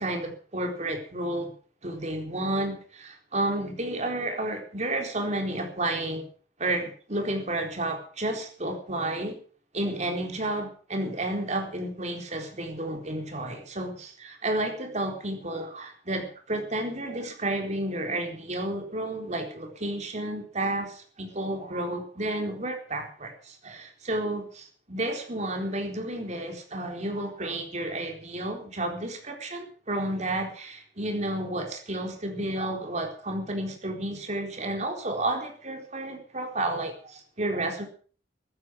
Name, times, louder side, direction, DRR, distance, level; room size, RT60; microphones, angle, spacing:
voice 1, 0.0-1.5 1.8-6.3 6.6-9.4 9.7-37.8, right 1 dB, 40° right, 3 dB, 4.2 m, -31 dB
15.0 x 14.0 x 6.3 m, 0.43 s
head